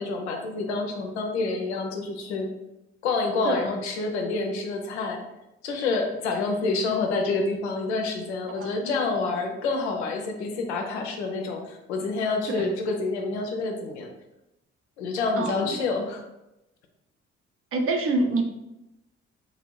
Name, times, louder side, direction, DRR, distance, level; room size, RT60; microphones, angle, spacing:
voice 1, 0.0-2.5 3.0-5.2 5.6-14.1 15.0-16.2, left 3 dB, 90° left, 3 dB, 0.5 m, -28 dB
voice 2, 8.6-8.9 12.5-12.7 15.4-15.7 17.7-18.4, right 2 dB, 40° right, 4 dB, 0.6 m, -26 dB
2.7 x 2.5 x 3.1 m, 0.91 s
hypercardioid pair, 50°, 33 cm